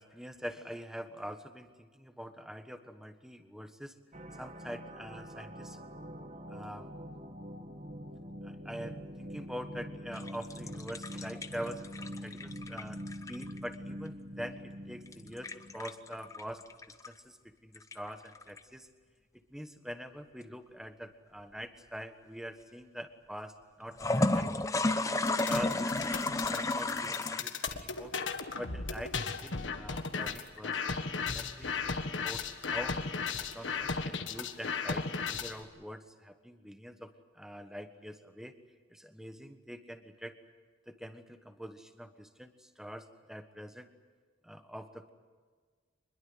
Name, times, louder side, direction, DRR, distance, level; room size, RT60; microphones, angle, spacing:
voice 1, 0.0-3.9 4.4-5.8 6.5-6.9 8.4-13.0 13.3-16.6 17.1-17.4 17.6-18.9 19.5-24.5 25.0-26.2 26.5-28.1 28.6-31.0 31.3-32.4 32.7-33.0 33.4-38.5 38.9-40.4 40.9-43.9 44.4-45.1, equal, 5° right, 8 dB, 1.4 m, -44 dB
sound 1, 4.1-15.9, equal, 35° right, 1.3 m, -45 dB
sound 2, 10.1-13.7 15.1-17.1 17.7-18.6 23.9-27.4, left 2 dB, 15° left, 0.8 m, -32 dB
sound 3, 25.3-35.6, left 5 dB, 75° left, 1.7 m, -36 dB
25.5 x 21.5 x 8.1 m, 1.5 s
head